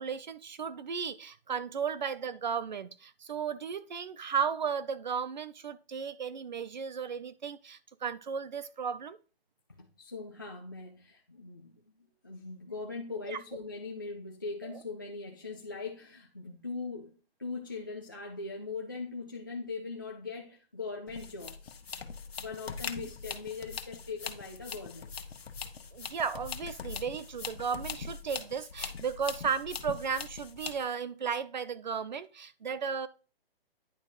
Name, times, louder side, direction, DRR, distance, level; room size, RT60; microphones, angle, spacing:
voice 1, 0.0-9.2 13.3-13.4 14.6-14.8 25.9-33.1, right 6 dB, 50° right, 0.6 m, -35 dB
voice 2, 9.8-11.8 12.2-21.7 22.4-25.1, left 4 dB, 20° left, 0.5 m, -40 dB
sound 1, 21.1-30.9, left 6 dB, 80° left, 1.2 m, -42 dB
10.0 x 4.1 x 4.8 m
hypercardioid pair, 180°, 30 cm